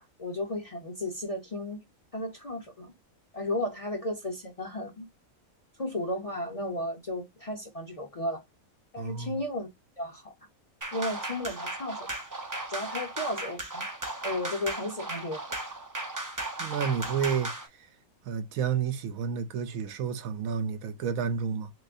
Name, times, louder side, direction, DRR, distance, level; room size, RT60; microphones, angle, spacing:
voice 1, 0.0-1.8 2.1-2.9 3.3-5.1 5.8-8.4 8.9-9.7 10.0-10.3 10.9-12.2 12.7-13.8 14.2-15.6, left 1 dB, 35° left, 0.6 m, -34 dB
voice 2, 9.0-9.4 16.6-17.5 17.8-17.9 18.3-21.7, right 7 dB, 75° right, 1.0 m, -30 dB
sound 1, 10.8-17.7, right 2 dB, 30° right, 0.3 m, -36 dB
6.0 x 2.1 x 2.5 m
omnidirectional pair, 1.5 m